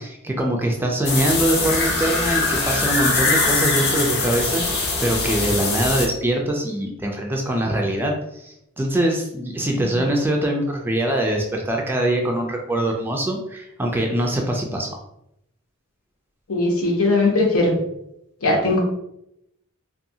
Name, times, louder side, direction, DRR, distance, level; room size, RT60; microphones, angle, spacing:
voice 1, 0.0-15.0, right 1 dB, 10° right, 1 dB, 0.3 m, -23 dB
sound 1, 1.0-6.1, left 3 dB, 50° left, 0.6 m, -22 dB
voice 2, 16.5-17.8 18.4-18.8, left 2 dB, 85° left, 0 dB, 0.8 m, -19 dB
2.6 x 2.3 x 2.6 m, 0.80 s
head